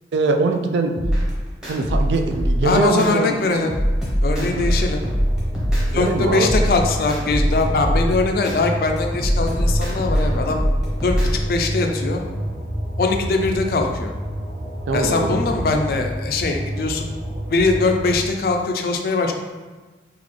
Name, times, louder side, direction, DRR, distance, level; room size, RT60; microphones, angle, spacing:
voice 1, 0.1-1.0 1.7-3.4 4.4-4.7 5.9-6.5 14.9-15.4, right 3 dB, 80° right, 5 dB, 0.3 m, -22 dB
sound 1, 0.9-3.1 3.5-6.1 6.4-8.6 9.0-11.5, equal, 5° right, 0.8 m, -22 dB
voice 2, 2.6-3.7 4.2-5.0 5.9-10.6 11.0-12.2 13.0-14.1 14.9-17.1 17.5-19.3, left 3 dB, 55° left, 4 dB, 0.3 m, -21 dB
sound 2, 4.6-18.2, equal, 35° right, 0.6 m, -29 dB
3.8 x 2.3 x 3.2 m, 1.3 s
head